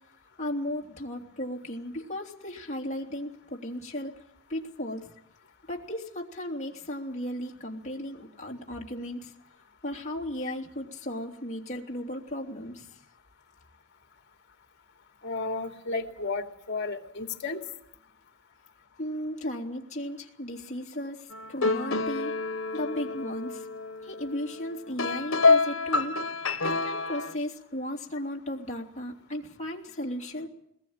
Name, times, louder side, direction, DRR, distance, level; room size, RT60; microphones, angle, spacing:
voice 1, 0.4-4.1 4.5-5.1 5.7-9.3 9.8-12.9 19.0-22.3 22.7-23.7 24.0-26.3 26.6-30.5, left 1 dB, 35° left, -1 dB, 3.2 m, -35 dB
voice 2, 15.2-17.6, left 3 dB, 55° left, 4 dB, 2.8 m, -33 dB
sound 1, 21.3-27.3, left 3 dB, 85° left, 1.3 m, -27 dB
21.5 x 20.5 x 8.9 m, 0.79 s
head